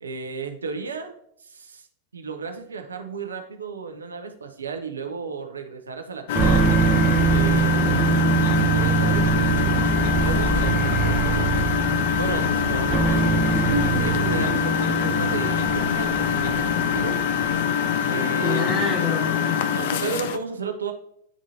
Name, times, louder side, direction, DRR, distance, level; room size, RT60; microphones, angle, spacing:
voice 1, 0.0-1.1 1.4-1.9 2.1-6.7 7.3-7.8 8.7-11.5 12.2-13.2 14.0-17.2 18.1-19.1 19.7-20.9, right 5 dB, 75° right, 5 dB, 0.6 m, -33 dB
Engine, 6.3-20.4, left 8 dB, 55° left, 0.4 m, -24 dB
sound 1, 6.3-17.7, right 6 dB, 20° right, 0.4 m, -24 dB
voice 2, 7.9-8.2 13.1-14.7 18.4-19.6, left 3 dB, 15° left, 0 dB, 1.5 m, -29 dB
10.0 x 3.6 x 2.7 m, 0.73 s
figure-of-eight pair, 90°, 0 cm